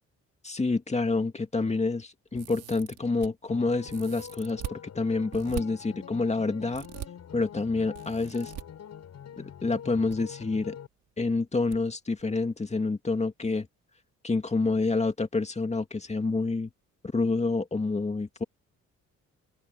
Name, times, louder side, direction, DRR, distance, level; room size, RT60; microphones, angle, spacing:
voice 1, 0.4-6.8 7.3-8.5 9.4-10.8 11.2-13.7 14.2-16.7 17.1-18.4, left 3 dB, 20° left, 2.3 m, -28 dB
sound 1, 2.3-3.3 3.9-4.8 5.3-5.6 6.7-7.1 7.9-8.6 9.8-10.2 10.4-10.5 11.7-11.8 12.2-12.3, right 13 dB, 85° right, 6.1 m, -40 dB
sound 2, 3.5-10.9, left 9 dB, 60° left, 7.5 m, -45 dB
cardioid pair, 90°, 30 cm